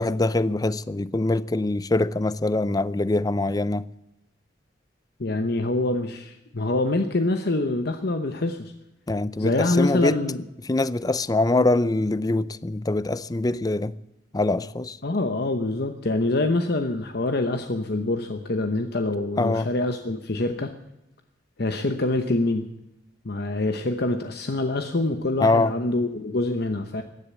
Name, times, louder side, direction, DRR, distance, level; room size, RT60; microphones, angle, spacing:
voice 1, 0.0-3.8 9.1-10.2 10.7-14.0 14.3-15.0 19.4-19.7 25.4-25.7, left 2 dB, 20° left, 0.5 m, -23 dB
voice 2, 5.2-8.7 9.4-10.4 15.0-20.7 21.6-22.7 23.2-27.0, left 2 dB, 60° left, 0.9 m, -25 dB
15.5 x 10.0 x 8.4 m
head